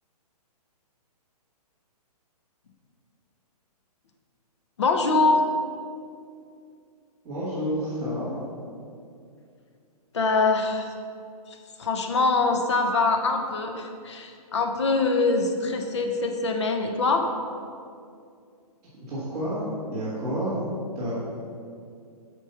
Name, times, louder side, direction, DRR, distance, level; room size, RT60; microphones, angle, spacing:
voice 1, 4.8-5.4 10.1-10.9 11.5-17.3, left 3 dB, 45° left, 4 dB, 0.8 m, -24 dB
voice 2, 7.2-8.3 19.1-20.7 20.9-21.1, equal, 15° right, -15 dB, 1.9 m, -29 dB
8.3 x 5.1 x 5.6 m, 2.4 s
hypercardioid pair, 175°, 20 cm